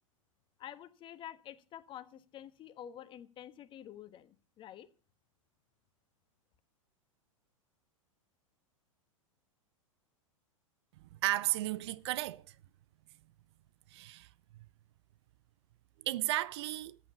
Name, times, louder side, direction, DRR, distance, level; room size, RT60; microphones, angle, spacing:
voice 1, 0.6-4.9, left 10 dB, 30° left, 1.3 m, -49 dB
voice 2, 11.2-12.5 13.9-14.3 16.0-17.0, right 16 dB, 50° right, 0.6 m, -34 dB
14.0 x 8.5 x 7.0 m
figure-of-eight pair, 100°, 17 cm